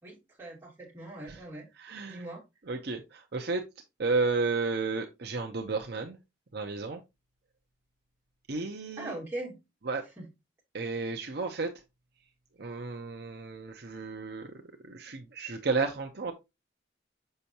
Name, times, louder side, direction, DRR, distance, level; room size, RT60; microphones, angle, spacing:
voice 1, 0.0-1.7 2.1-2.4 9.0-9.6 10.2-10.3, right 1 dB, 15° right, -5 dB, 3.1 m, -40 dB
voice 2, 1.8-2.2 2.7-3.7 4.0-6.2 6.5-7.0 8.5-9.2 9.8-10.0 10.7-11.7 12.6-14.5 14.8-16.3, right 4 dB, 55° right, 4 dB, 0.7 m, -32 dB
6.7 x 5.6 x 2.8 m, 0.23 s
head